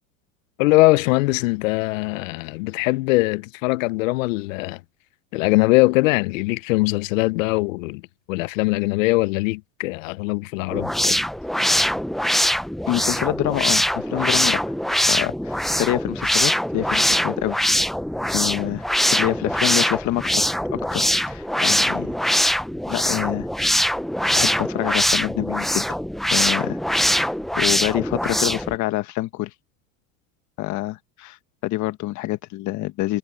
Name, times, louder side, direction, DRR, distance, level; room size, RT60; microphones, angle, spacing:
voice 1, 0.6-4.8 5.3-8.0 8.3-11.2, left 22 dB, 75° left, 0.5 m, -21 dB
sound 1, 10.7-28.8, equal, ahead, 0.4 m, -22 dB
voice 2, 12.9-14.6 15.1-17.6 18.3-22.2 22.9-23.5 24.4-25.8 26.3-26.8 27.1-29.5 30.6-31.4 31.6-33.2, left 17 dB, 45° left, 1.5 m, -27 dB
supercardioid pair, 115°, 40 cm